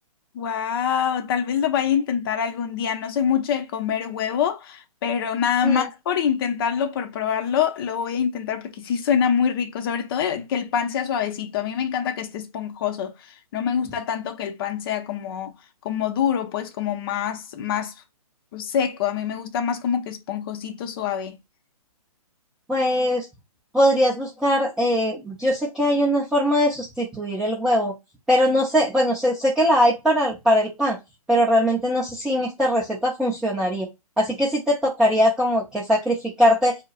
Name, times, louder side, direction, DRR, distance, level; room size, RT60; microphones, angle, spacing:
voice 1, 0.3-13.1 13.5-15.5 15.8-17.9 18.5-21.4, left 8 dB, 40° left, 0.6 m, -25 dB
voice 2, 22.7-23.3 23.7-27.9 28.3-31.0 31.3-33.9 34.2-36.8, equal, 5° right, 0.5 m, -21 dB
4.5 x 2.0 x 2.3 m
hypercardioid pair, 145°, 19 cm